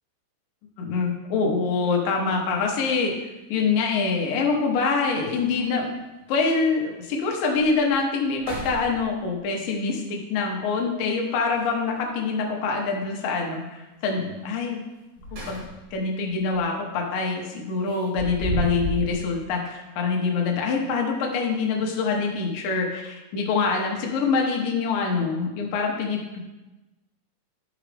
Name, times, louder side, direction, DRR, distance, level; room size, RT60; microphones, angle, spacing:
voice 1, 0.8-3.2 3.5-5.9 6.3-14.8 15.3-26.4, left 4 dB, 75° left, 0 dB, 2.1 m, -25 dB
sound 1, 2.5-2.7 4.4-4.5 4.9-5.0 5.2-5.8 6.4-6.5 7.0-7.1 7.5-7.9 8.3-9.4 11.5-12.2 14.9-16.0 16.3-16.6 17.8-19.2, right 2 dB, 65° right, 5.3 m, -33 dB
11.5 x 6.2 x 3.4 m, 1.1 s
omnidirectional pair, 5.6 m